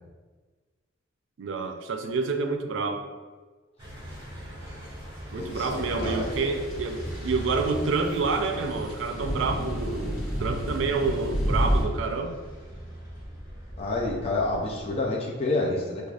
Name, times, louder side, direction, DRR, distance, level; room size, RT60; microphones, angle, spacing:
voice 1, 1.4-3.0 5.3-12.4, right 4 dB, 75° right, 5 dB, 0.4 m, -28 dB
sound 1, 3.8-15.1, equal, 20° right, 1.3 m, -40 dB
voice 2, 5.3-6.4 13.8-16.1, left 2 dB, 30° left, -3 dB, 0.4 m, -29 dB
sound 2, 5.5-11.8, equal, 85° left, 0.8 m, -31 dB
4.7 x 2.3 x 2.4 m, 1.4 s
head